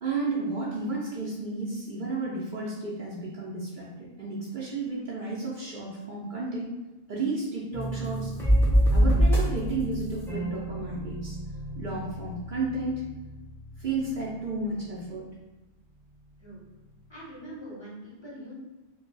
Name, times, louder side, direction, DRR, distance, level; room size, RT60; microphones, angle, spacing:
voice 1, 0.0-6.7 7.1-8.3 8.9-11.4 11.8-13.0 13.8-15.2, right 3 dB, 55° right, -6 dB, 0.7 m, -32 dB
sound 1, 7.7-14.5, equal, 5° left, 0.6 m, -27 dB
voice 2, 17.1-18.5, right 1 dB, 25° left, -8 dB, 0.8 m, -43 dB
2.7 x 2.3 x 3.8 m, 1.1 s
omnidirectional pair, 1.1 m